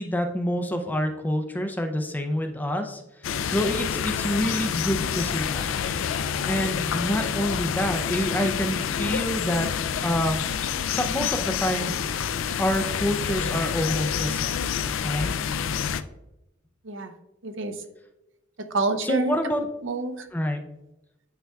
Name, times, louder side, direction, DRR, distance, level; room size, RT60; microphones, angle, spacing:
voice 1, 0.0-3.0 3.5-5.6 6.5-9.7 10.0-10.5 10.9-12.2 12.6-14.5 15.0-15.3 19.0-19.6 20.3-20.6, equal, 10° left, 5 dB, 0.4 m, -27 dB
sound 1, 3.2-16.0, left 7 dB, 75° left, 0.4 m, -28 dB
voice 2, 17.4-17.8 18.6-19.4 19.8-20.3, right 2 dB, 65° right, 7 dB, 0.7 m, -27 dB
9.0 x 4.6 x 2.3 m, 0.94 s
head